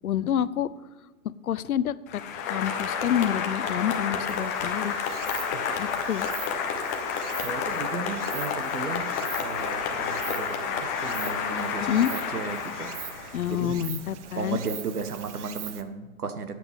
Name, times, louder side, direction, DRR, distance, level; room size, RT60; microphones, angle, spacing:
voice 1, 0.0-0.7 1.4-2.2 2.5-4.9 5.8-6.3 11.8-12.1 13.3-14.6, left 10 dB, 75° left, 17 dB, 0.6 m, -27 dB
Applause, 2.1-13.6, left 6 dB, 10° left, 0.4 m, -30 dB
Stream, 4.3-15.8, right 9 dB, 55° right, 1.0 m, -42 dB
voice 2, 7.4-13.8 14.4-16.5, right 4 dB, 85° right, 9 dB, 1.4 m, -35 dB
13.5 x 9.3 x 3.6 m, 1.2 s
hypercardioid pair, 135°, 44 cm